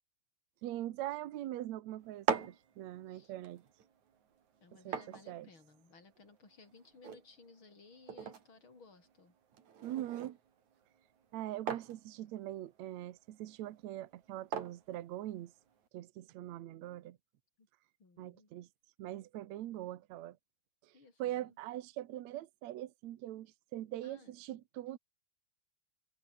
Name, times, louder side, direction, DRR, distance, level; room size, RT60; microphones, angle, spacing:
voice 1, 0.6-3.6 4.8-5.0 5.3-5.5 9.8-10.4 11.3-15.5 15.9-17.2 18.2-18.7 19.0-20.4 20.8-20.9 21.2-25.0, right 14 dB, 80° right, 1.6 m, -42 dB
sound 1, 2.0-15.9, right 7 dB, 50° right, 3.6 m, -44 dB
voice 2, 4.6-9.4 17.6-17.7 18.0-18.5 20.9-21.6 24.0-24.3, left 4 dB, 30° left, 6.5 m, -59 dB
omnidirectional pair, 4.7 m